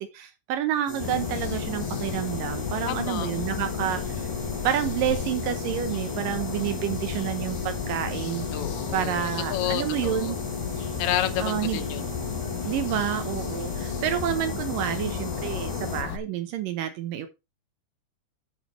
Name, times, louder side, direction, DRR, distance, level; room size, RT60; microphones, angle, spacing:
voice 1, 0.0-4.3 4.6-8.5 8.9-10.4 11.4-11.8 12.7-17.3, right 10 dB, 80° right, 2.0 m, -29 dB
sound 1, 0.9-16.0, left 1 dB, 10° right, 2.2 m, -36 dB
sound 2, 1.0-16.2, left 8 dB, 70° left, 2.3 m, -33 dB
voice 2, 2.9-3.3 8.5-10.3 11.0-12.2, left 12 dB, 90° left, 3.3 m, -30 dB
8.8 x 8.6 x 3.2 m
omnidirectional pair, 5.1 m